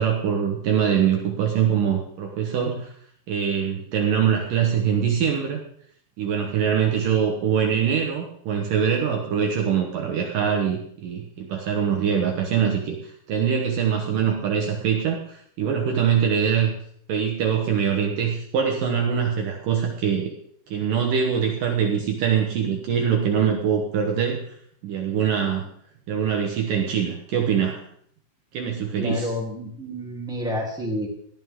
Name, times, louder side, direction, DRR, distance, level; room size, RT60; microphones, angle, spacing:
voice 1, 0.0-2.9 3.3-5.6 6.2-16.7 17.1-20.3 20.7-24.4 24.8-25.7 26.1-27.8 28.5-29.3, right 7 dB, 80° right, 2 dB, 1.9 m, -23 dB
voice 2, 29.0-31.1, left 1 dB, ahead, -3 dB, 1.2 m, -29 dB
17.5 x 12.5 x 3.7 m, 0.64 s
omnidirectional pair, 5.9 m